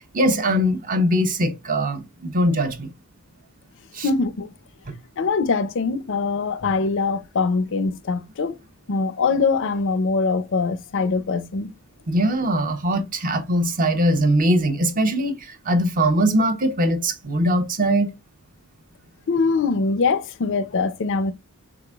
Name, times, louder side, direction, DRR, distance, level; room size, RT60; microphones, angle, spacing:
voice 1, 0.1-2.9 3.9-4.1 12.1-18.1, right 1 dB, 40° right, 0.8 m, -21 dB
voice 2, 4.0-4.5 5.2-8.6 8.9-11.7 19.3-21.3, left 4 dB, 60° left, 0.5 m, -23 dB
4.8 x 4.2 x 2.3 m
head